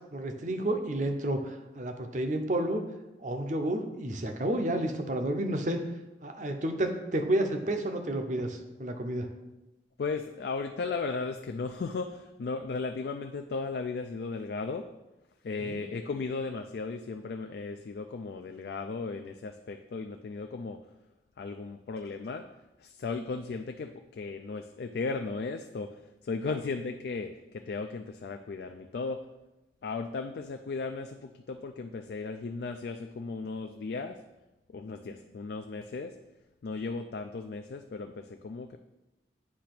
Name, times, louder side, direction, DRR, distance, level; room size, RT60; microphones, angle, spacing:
voice 1, 0.1-2.8 3.2-5.8 6.2-9.3 15.6-15.8 35.1-35.2, right 1 dB, 45° right, 5 dB, 0.7 m, -31 dB
voice 2, 10.0-14.9 15.4-20.8 21.4-22.5 22.8-25.9 26.2-29.2 29.8-34.2 34.7-36.1 36.6-38.8, left 4 dB, 60° left, 5 dB, 0.3 m, -36 dB
8.5 x 2.8 x 5.9 m, 1.0 s
head